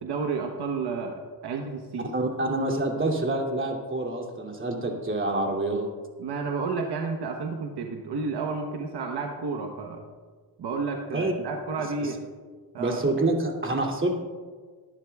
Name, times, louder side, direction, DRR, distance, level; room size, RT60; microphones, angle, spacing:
voice 1, 0.0-2.1 6.2-10.0 10.6-12.2 12.7-13.0, right 4 dB, 65° right, 3 dB, 1.2 m, -31 dB
voice 2, 2.1-5.9 11.1-11.3 12.0-12.1 12.8-14.1, right 2 dB, 25° right, 0 dB, 2.7 m, -27 dB
19.0 x 11.0 x 2.4 m, 1.5 s
cardioid pair, 75°, 43 cm